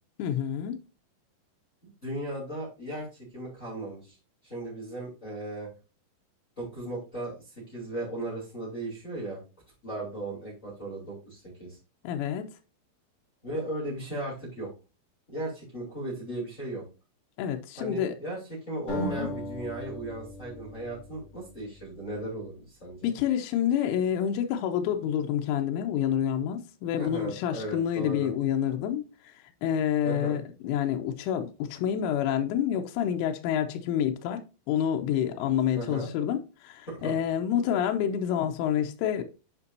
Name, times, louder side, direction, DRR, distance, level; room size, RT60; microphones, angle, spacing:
voice 1, 0.2-0.8 12.0-12.5 17.4-18.2 19.0-19.3 23.0-34.4 34.7-39.2, left 9 dB, 90° left, 3.3 m, -28 dB
voice 2, 1.8-4.2 4.4-5.7 6.6-9.4 9.8-11.8 13.4-14.7 15.3-16.8 17.8-23.1 27.0-28.3 30.0-30.4 35.7-36.1 36.9-37.2, right 1 dB, 20° left, 3.3 m, -36 dB
sound 1, 18.9-22.1, left 1 dB, 40° left, 3.3 m, -39 dB
9.6 x 5.3 x 2.7 m
omnidirectional pair, 5.6 m